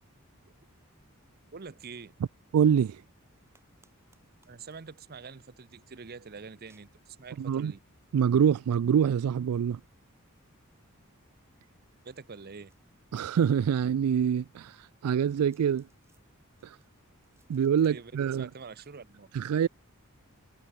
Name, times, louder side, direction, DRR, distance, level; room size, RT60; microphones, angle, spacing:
voice 1, 1.5-2.2 4.5-7.8 12.0-12.7 17.8-19.7, right 5 dB, 45° right, 0.7 m, -46 dB
voice 2, 2.5-3.0 7.4-7.7 8.1-9.8 13.1-15.9 16.6-16.8 17.5-18.5 19.3-19.7, right 8 dB, 85° right, 0.3 m, -25 dB
sound 1, 3.5-19.1, right 3 dB, 10° right, 7.8 m, -74 dB
head